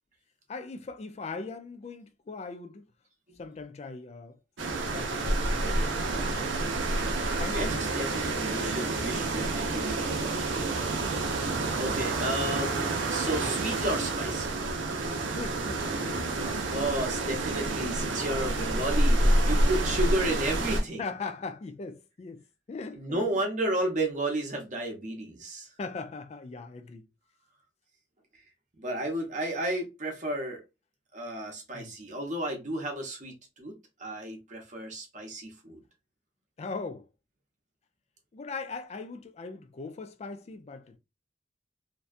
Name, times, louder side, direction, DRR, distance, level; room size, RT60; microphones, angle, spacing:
voice 1, 0.5-2.9 3.4-4.4 4.7-6.7 7.4-8.5 15.3-16.3 19.1-19.6 21.0-23.4 25.8-27.1 31.7-31.9 36.6-37.1 38.3-41.0, left 4 dB, 35° left, 0.3 m, -40 dB
sound 1, 4.6-20.8, right 2 dB, 85° right, 0.6 m, -28 dB
voice 2, 7.5-10.3 11.8-14.7 16.4-21.0 22.9-25.7 28.8-30.6 31.1-35.8, right 1 dB, 40° right, 0.8 m, -33 dB
2.6 x 2.2 x 2.4 m
head